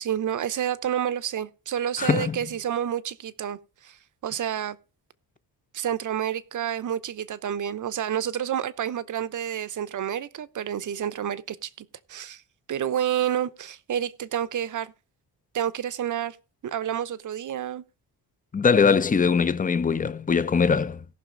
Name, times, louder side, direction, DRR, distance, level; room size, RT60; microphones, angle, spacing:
voice 1, 0.0-4.0 4.2-4.8 5.7-12.4 12.7-14.9 15.5-16.4 16.6-17.8, right 10 dB, 50° right, 0.8 m, -29 dB
voice 2, 2.0-2.4 18.5-21.0, left 5 dB, 20° left, 0.6 m, -21 dB
18.0 x 6.0 x 3.8 m
cardioid pair, 150°, 39 cm